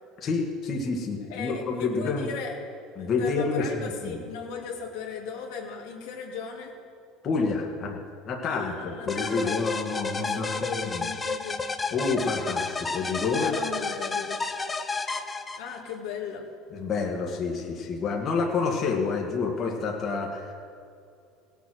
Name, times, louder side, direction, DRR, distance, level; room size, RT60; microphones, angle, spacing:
voice 1, 0.2-2.3 3.0-4.2 7.2-8.0 8.3-11.0 11.9-13.5 16.7-20.5, left 4 dB, 45° left, 0 dB, 1.9 m, -28 dB
voice 2, 1.3-2.5 3.0-6.8 8.4-9.8 10.1-11.7 13.3-14.4 15.6-16.5, left 6 dB, 75° left, -1 dB, 2.2 m, -37 dB
sound 1, 9.1-15.9, left 4 dB, 20° left, 0.8 m, -31 dB
17.0 x 7.3 x 6.3 m, 2.5 s
supercardioid pair, 90°, 0 cm